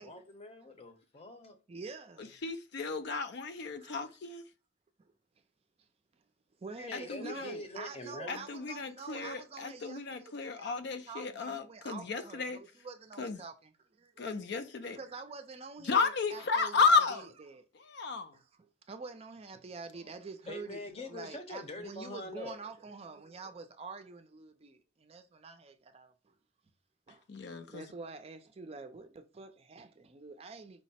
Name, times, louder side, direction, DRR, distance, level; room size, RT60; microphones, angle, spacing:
voice 1, 0.0-1.6 6.8-8.4 19.9-22.6, left 2 dB, 35° left, 0.8 m, -44 dB
voice 2, 1.7-2.4 3.8-3.9 5.0-5.1 6.6-10.8 11.1-13.7 14.0-14.3 15.0-17.2 17.5-17.7 18.3-18.4 18.9-20.8 21.1-26.3 27.1-27.2 27.7-30.8, right 4 dB, 35° right, 0.4 m, -47 dB
voice 3, 2.2-4.4 6.9-7.5 8.3-12.6 13.2-13.4 14.2-15.0 15.8-17.3 17.7-18.4 27.3-27.8, left 4 dB, 60° left, 0.5 m, -32 dB
4.6 x 2.1 x 4.1 m
head